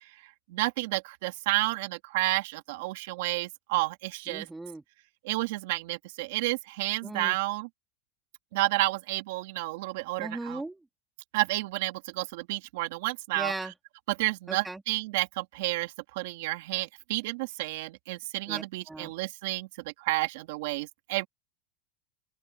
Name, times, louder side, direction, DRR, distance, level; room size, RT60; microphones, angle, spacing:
voice 1, 0.5-4.5 5.2-7.7 8.5-10.6 11.3-13.7 14.1-19.7 20.0-21.3, right 20 dB, 70° right, 2.4 m, -31 dB
voice 2, 4.3-4.8 7.0-7.4 10.2-10.8 13.3-13.7 14.5-14.8 18.5-19.1, right 2 dB, 5° right, 2.8 m, -37 dB
open air
supercardioid pair, 150°, 0 cm